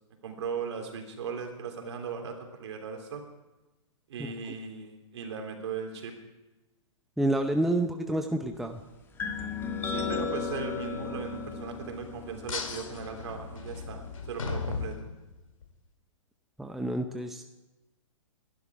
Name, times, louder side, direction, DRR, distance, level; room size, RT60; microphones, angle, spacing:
voice 1, 0.2-3.2 4.1-6.1 9.9-15.1, right 5 dB, 60° right, 3 dB, 3.3 m, -38 dB
voice 2, 7.2-8.8 16.6-17.4, right 1 dB, ahead, 5 dB, 0.7 m, -28 dB
sound 1, 9.2-14.8, left 5 dB, 15° left, 1.7 m, -36 dB
sound 2, 12.5-15.7, left 4 dB, 85° left, 2.3 m, -37 dB
20.5 x 11.5 x 4.8 m, 1.1 s
hypercardioid pair, 135°, 17 cm